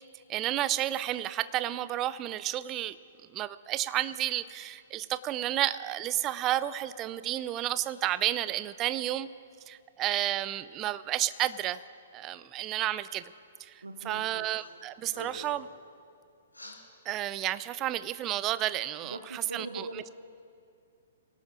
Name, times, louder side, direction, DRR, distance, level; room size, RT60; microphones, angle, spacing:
voice 1, 0.3-3.0 3.3-9.3 9.7-11.8 12.1-13.2 13.6-15.7 17.1-19.9, right 13 dB, 25° right, 15 dB, 0.5 m, -31 dB
voice 2, 13.8-14.5 19.0-20.1, right 2 dB, 80° right, 5 dB, 1.1 m, -41 dB
sound 1, 14.5-14.7 15.0-15.7 16.5-16.8, left 1 dB, 85° left, 3.6 m, -45 dB
26.0 x 18.0 x 2.6 m, 2.5 s
figure-of-eight pair, 115°, 0 cm